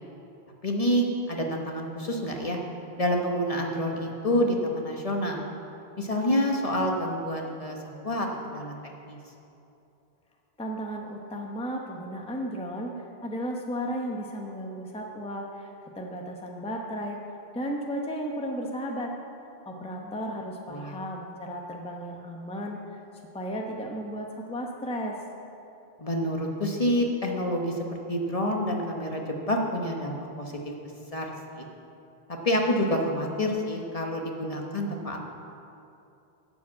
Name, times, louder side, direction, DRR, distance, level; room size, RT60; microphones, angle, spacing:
voice 1, 0.6-2.6 3.0-5.4 6.0-7.8 8.0-9.2 19.8-20.1 20.7-21.0 26.0-30.7 31.1-31.6 32.4-35.2, equal, 35° left, 1 dB, 1.0 m, -28 dB
voice 2, 10.6-17.2 17.5-19.1 19.7-23.0 23.3-25.2, equal, 5° left, 1 dB, 0.7 m, -34 dB
12.0 x 5.1 x 8.3 m, 2.8 s
omnidirectional pair, 1.1 m